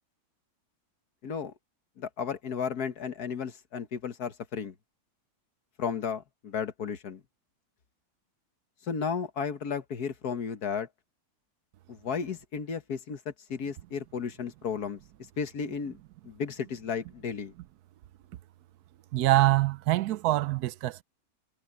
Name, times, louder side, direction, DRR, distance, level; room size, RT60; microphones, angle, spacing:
voice 1, 1.2-1.5 2.0-4.7 5.8-7.2 8.9-10.9 11.9-15.0 15.4-16.0 16.2-17.5, left 6 dB, 80° left, 1.9 m, -34 dB
voice 2, 19.1-21.0, right 16 dB, 85° right, 1.1 m, -24 dB
omnidirectional pair, 1.6 m